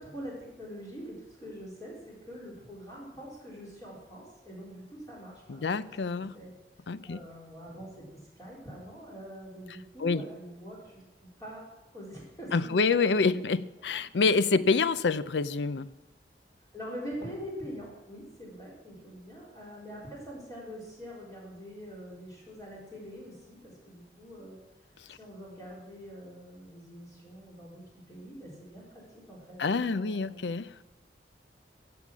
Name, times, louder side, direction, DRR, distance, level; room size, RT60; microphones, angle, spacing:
voice 1, 0.0-6.5 7.1-11.6 11.9-13.6 16.7-24.6 25.1-30.4, equal, 20° left, -5 dB, 4.1 m, -44 dB
voice 2, 5.5-6.3 6.9-7.2 10.0-10.2 12.5-15.9 29.6-30.8, left 4 dB, 80° left, 15 dB, 0.5 m, -27 dB
16.5 x 7.1 x 6.2 m, 1.1 s
head